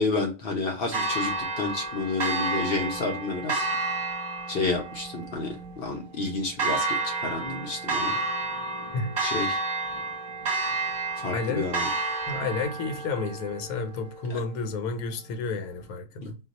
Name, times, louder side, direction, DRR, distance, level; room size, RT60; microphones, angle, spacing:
voice 1, 0.0-3.7 4.5-8.1 9.2-9.6 11.2-11.9 14.3-14.4 16.2-16.3, left 3 dB, 60° left, 0.6 m, -30 dB
Church bell, 0.9-14.9, right 3 dB, 35° right, 0.8 m, -31 dB
voice 2, 11.3-11.7 12.3-16.3, left 4 dB, 80° left, 1.1 m, -31 dB
2.3 x 2.2 x 3.9 m
omnidirectional pair, 1.5 m